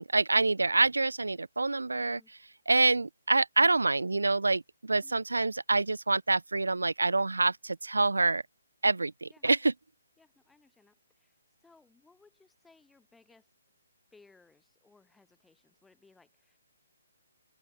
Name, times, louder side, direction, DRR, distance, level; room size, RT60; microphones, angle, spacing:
voice 1, 0.0-2.2 2.7-8.4 8.8-9.7, right 3 dB, 85° right, 0.6 m, -26 dB
voice 2, 1.9-2.3 5.0-5.2 9.2-9.5 10.2-11.3 11.6-13.5 14.1-16.6, left 3 dB, 5° left, 4.9 m, -62 dB
open air
figure-of-eight pair, 145°, 0 cm